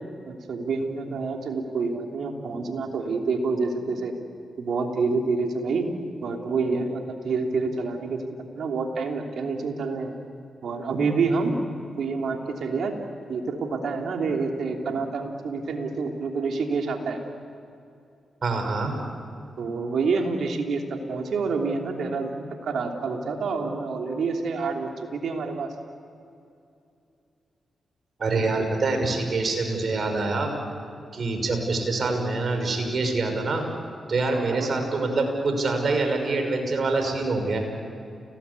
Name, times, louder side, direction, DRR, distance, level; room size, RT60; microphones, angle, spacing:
voice 1, 0.3-4.1 4.6-5.9 6.2-8.2 8.6-10.1 10.6-11.5 12.0-12.9 13.3-17.2 19.6-25.7 28.3-28.5 34.3-34.9, right 4 dB, 75° right, 2 dB, 3.2 m, -28 dB
voice 2, 18.4-18.9 28.2-30.5 31.1-33.6 34.1-37.6, right 3 dB, 55° right, 4 dB, 5.8 m, -25 dB
30.0 x 18.5 x 8.5 m, 2.6 s
supercardioid pair, 45°, 0 cm